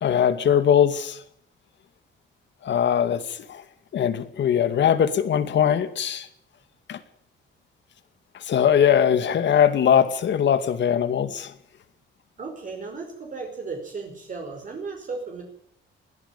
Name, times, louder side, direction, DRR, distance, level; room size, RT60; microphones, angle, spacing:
voice 1, 0.0-1.2 2.6-3.6 3.9-6.3 6.9-7.0 8.4-11.5, left 8 dB, 65° left, 11 dB, 2.3 m, -21 dB
voice 2, 12.4-15.4, right 4 dB, 40° right, 2 dB, 5.2 m, -35 dB
21.5 x 16.5 x 7.3 m, 0.67 s
wide cardioid pair, 160°, 21 cm